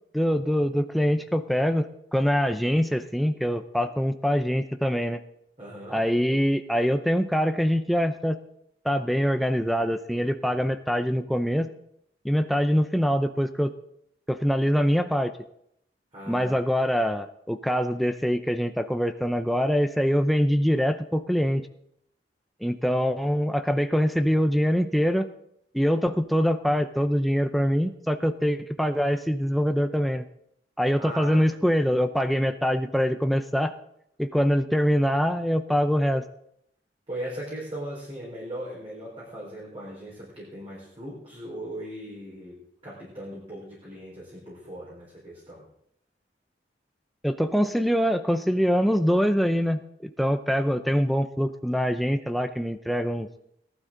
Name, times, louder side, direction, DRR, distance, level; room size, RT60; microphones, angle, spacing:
voice 1, 0.1-1.9 2.1-5.2 5.9-8.4 8.8-11.7 12.2-13.7 14.3-15.3 16.3-21.6 22.6-25.3 25.7-30.2 30.8-33.7 34.2-36.2 47.2-53.3, equal, ahead, 7 dB, 0.5 m, -24 dB
voice 2, 5.6-6.0 16.1-16.6 31.0-31.5 37.1-45.7, right 1 dB, 35° right, -6 dB, 4.3 m, -39 dB
18.0 x 12.0 x 3.8 m, 0.74 s
head